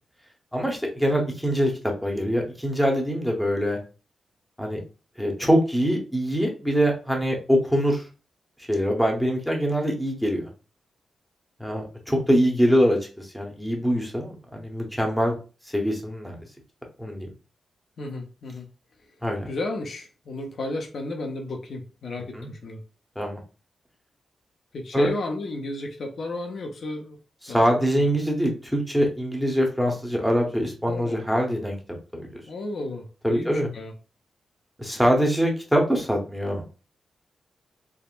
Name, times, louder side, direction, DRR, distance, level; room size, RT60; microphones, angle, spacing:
voice 1, 0.5-1.7 2.0-3.8 4.6-4.8 5.2-8.1 8.7-10.5 11.6-15.3 15.7-16.4 17.0-17.3 19.2-19.5 22.3-22.5 23.2-23.4 24.9-25.1 27.4-32.3 33.2-33.7 34.8-36.7, equal, ahead, 1 dB, 0.9 m, -24 dB
voice 2, 18.0-18.7 19.5-22.8 24.7-27.2 27.5-27.6 27.9-28.1 30.9-31.2 32.5-33.9, left 2 dB, 65° left, 3 dB, 0.6 m, -33 dB
3.5 x 2.0 x 2.4 m, 0.34 s
cardioid pair, 60°, 0 cm